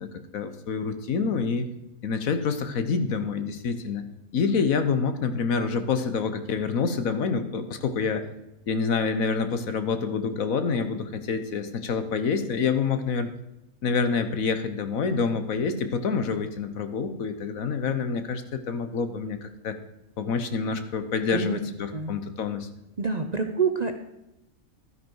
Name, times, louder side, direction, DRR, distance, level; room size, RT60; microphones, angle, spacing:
voice 1, 0.0-1.7 2.0-4.1 4.3-8.3 8.7-13.3 13.8-19.7 20.2-22.7, left 5 dB, 70° left, 9 dB, 1.4 m, -27 dB
voice 2, 21.3-21.6 21.9-22.1 23.0-24.0, right 4 dB, 35° right, 6 dB, 0.7 m, -27 dB
12.5 x 9.9 x 4.7 m, 0.91 s
omnidirectional pair, 1.5 m